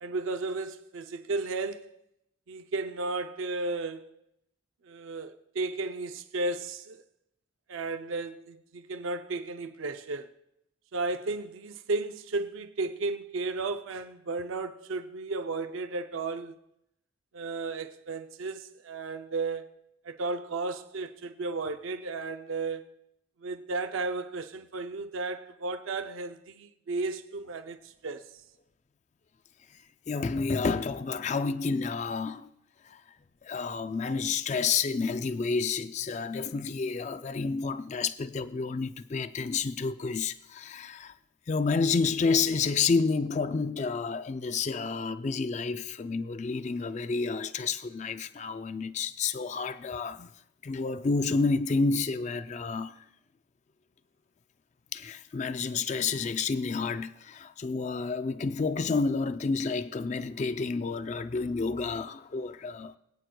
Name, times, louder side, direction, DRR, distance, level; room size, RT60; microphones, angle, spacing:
voice 1, 0.0-1.9 2.5-4.1 4.9-7.0 7.7-10.3 10.9-16.5 17.3-19.7 20.0-22.8 23.4-28.2, right 3 dB, 80° right, 0.5 m, -34 dB
voice 2, 30.1-32.5 32.8-33.0 33.4-41.1 41.5-50.3 50.6-53.0 54.9-62.9, left 4 dB, 35° left, 0.3 m, -30 dB
24.5 x 9.2 x 2.3 m
head